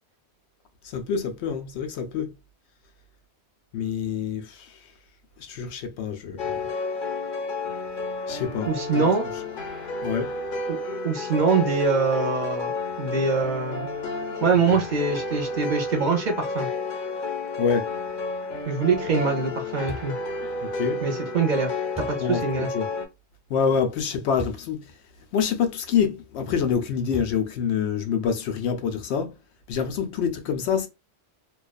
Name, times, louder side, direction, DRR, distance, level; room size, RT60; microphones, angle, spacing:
voice 1, 0.8-2.3 3.7-4.8 5.4-6.7 8.3-8.7 9.0-9.1 10.0-10.3 17.6-17.9 20.6-21.0 22.2-22.9 23.5-24.8 25.3-29.3 29.7-30.9, left 7 dB, 80° left, 0.9 m, -26 dB
sound 1, 6.4-23.0, left 3 dB, 55° left, 0.8 m, -31 dB
voice 2, 8.7-9.2 10.7-10.8 11.0-13.9 14.4-16.7 18.7-20.1 21.0-22.7, right 4 dB, 50° right, 0.7 m, -24 dB
sound 2, 19.9-20.2 21.9-22.2 24.4-24.7 25.3-25.4 27.1-27.6, right 1 dB, 5° right, 0.9 m, -37 dB
2.5 x 2.3 x 2.3 m
omnidirectional pair, 1.1 m